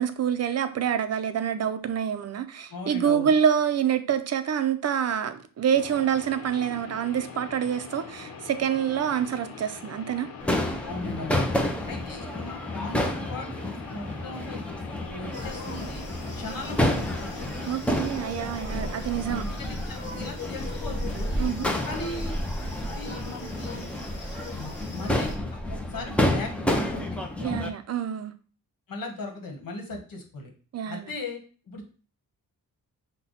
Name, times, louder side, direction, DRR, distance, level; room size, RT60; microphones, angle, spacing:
voice 1, 0.0-10.3 17.7-19.4 21.4-21.7 27.4-28.3 30.7-31.1, right 8 dB, 45° right, 10 dB, 0.5 m, -26 dB
voice 2, 2.7-3.3 10.8-11.5 11.9-13.5 13.9-14.6 14.9-16.0 16.4-17.6 18.8-18.9 19.3-21.4 21.8-22.4 22.7-23.9 24.5-25.3 25.7-27.2 28.9-30.5 30.8-31.4 31.6-31.9, left 2 dB, 70° left, 2 dB, 1.3 m, -38 dB
sound 1, 5.7-17.8, left 5 dB, 90° left, 0.9 m, -43 dB
Crowd / Fireworks, 10.4-27.7, left 1 dB, 5° left, 0.5 m, -30 dB
sound 2, 15.3-25.3, equal, 30° left, 1.2 m, -36 dB
5.5 x 2.2 x 4.0 m, 0.39 s
wide cardioid pair, 145°, 35 cm